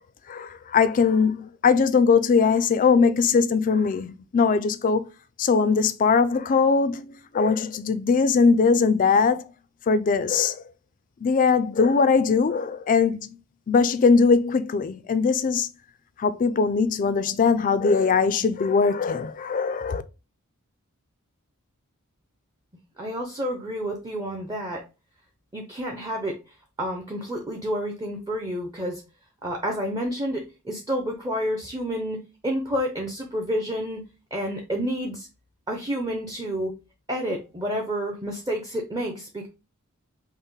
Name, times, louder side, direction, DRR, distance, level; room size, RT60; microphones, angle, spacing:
voice 1, 0.3-5.0 5.4-9.4 9.9-10.6 11.2-13.3 13.7-15.7 16.2-20.0, left 5 dB, 35° left, 0.3 m, -21 dB
voice 2, 23.0-24.8 25.5-26.4 26.8-29.0 29.4-34.0 34.3-35.3 35.7-36.7 37.1-39.5, equal, 20° right, 0.5 m, -29 dB
5.5 x 2.1 x 3.0 m
head